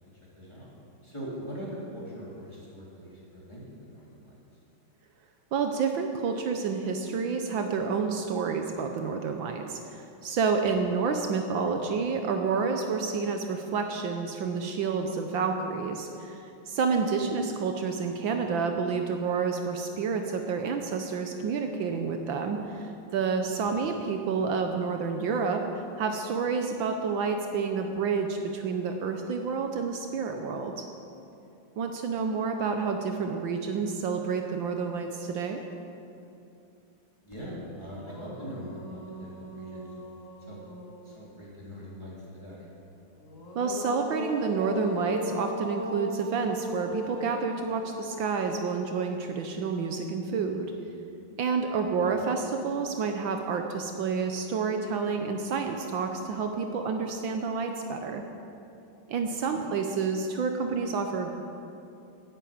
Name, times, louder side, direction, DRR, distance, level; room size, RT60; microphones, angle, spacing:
voice 1, 0.3-0.7 1.0-3.6 3.9-4.3 23.8-23.9 37.2-39.9 40.5-40.6 41.0-42.7 52.0-52.2 59.5-59.6, equal, 15° left, -6 dB, 3.2 m, -41 dB
voice 2, 5.5-25.6 26.0-30.7 31.8-35.6 43.5-50.7 51.4-58.2 59.1-61.4, right 5 dB, 70° right, 5 dB, 1.5 m, -29 dB
sound 1, 37.3-37.4 37.8-41.5 43.1-50.4, left 2 dB, 40° left, 2.1 m, -39 dB
11.0 x 9.1 x 8.7 m, 2.7 s
omnidirectional pair, 2.2 m